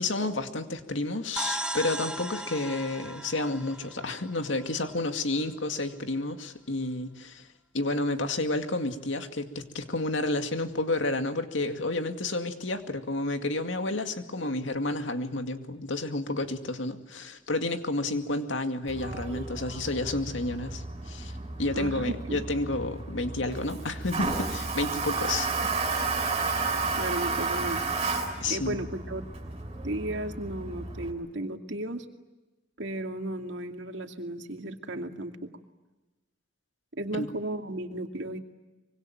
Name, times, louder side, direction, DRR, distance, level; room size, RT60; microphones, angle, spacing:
voice 1, 0.0-7.5 7.7-21.3 21.6-25.8 28.4-28.8 37.2-37.3, left 2 dB, 75° left, 6 dB, 2.3 m, -30 dB
sound 1, 1.4-5.0, right 2 dB, 5° right, 1.7 m, -36 dB
Toilet flush, 18.9-31.1, right 3 dB, 30° right, 6.2 m, -32 dB
voice 2, 21.7-22.5 27.0-27.8 28.5-29.3 29.8-32.0 32.8-35.5 36.9-38.4, right 1 dB, 65° right, 5 dB, 2.4 m, -34 dB
25.0 x 24.0 x 9.2 m, 1.1 s
head